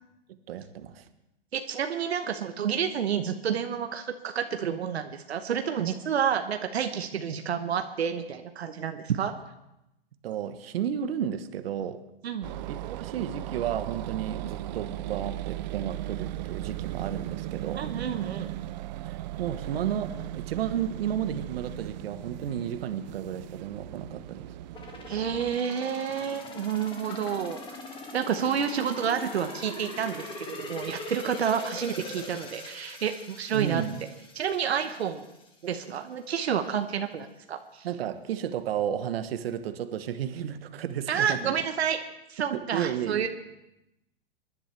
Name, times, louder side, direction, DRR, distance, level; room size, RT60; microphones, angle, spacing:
voice 1, 0.3-1.1 10.2-12.0 12.7-17.9 19.1-24.5 33.5-33.9 37.8-41.6 42.5-43.3, right 9 dB, 70° right, 10 dB, 1.1 m, -33 dB
voice 2, 1.5-9.3 12.2-12.5 17.7-18.5 25.1-27.6 28.1-33.8 34.3-35.2 35.6-37.9 41.1-42.0 42.3-43.3, right 8 dB, 90° right, 7 dB, 1.0 m, -29 dB
sound 1, 12.4-25.6, right 15 dB, 45° right, 0.5 m, -37 dB
sound 2, 24.7-35.5 35.9-36.0, left 2 dB, 15° left, 2.0 m, -42 dB
sound 3, 26.1-27.8 28.4-30.2 30.6-31.2, left 5 dB, 65° left, 2.8 m, -54 dB
22.0 x 11.0 x 3.3 m, 0.89 s
hypercardioid pair, 130°, 31 cm